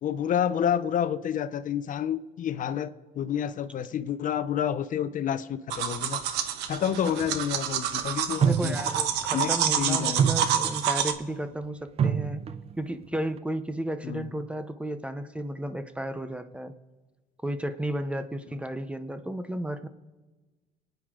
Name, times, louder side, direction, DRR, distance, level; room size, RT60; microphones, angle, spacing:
voice 1, 0.0-6.2 6.7-8.8 9.3-10.3 14.0-14.3, left 9 dB, 50° left, 13 dB, 0.6 m, -29 dB
sound 1, 5.7-11.1, right 9 dB, 90° right, 1.1 m, -28 dB
sound 2, 7.1-7.2 8.4-9.2 9.5-9.8 10.2-11.1 12.0-12.8 13.1-13.4, right 7 dB, 35° right, 0.5 m, -27 dB
voice 2, 8.4-12.4 12.8-16.7 17.4-19.9, right 1 dB, 5° right, 11 dB, 0.8 m, -33 dB
25.5 x 9.2 x 3.7 m, 1.2 s
cardioid pair, 110°, 17 cm